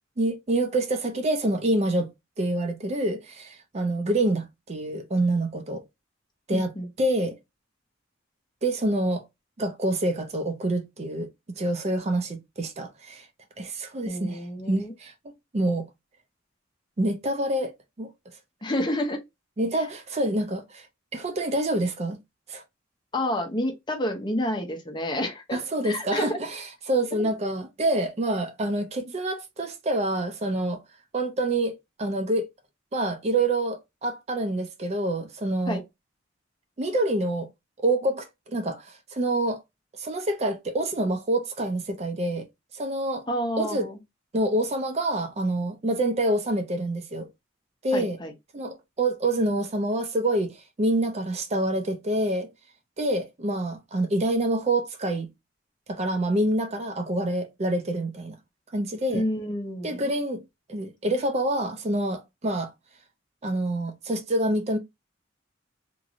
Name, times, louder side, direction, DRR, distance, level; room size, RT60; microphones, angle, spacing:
voice 1, 0.2-2.1 2.4-5.8 6.5-6.7 7.0-7.4 8.6-9.2 9.6-13.3 13.6-14.4 14.7-15.1 15.5-15.9 17.0-17.7 18.0-18.1 19.6-20.9 21.1-22.2 22.5-22.6 25.5-30.8 31.1-31.7 32.0-32.5 32.9-35.8 36.8-37.5 37.8-39.6 40.0-42.5 42.7-43.2 43.6-43.9 44.3-47.3 47.8-48.2 48.5-52.5 53.0-55.3 55.9-58.4 58.7-59.2 59.8-60.4 60.7-62.7 63.4-64.8, right 1 dB, 35° right, 0.4 m, -26 dB
voice 2, 6.5-6.9 14.1-14.9 18.6-19.2 19.8-19.9 23.1-26.4 35.7-35.8 43.3-44.0 47.9-48.3 59.1-60.1, left 1 dB, 25° left, 0.6 m, -29 dB
3.0 x 2.5 x 2.5 m
head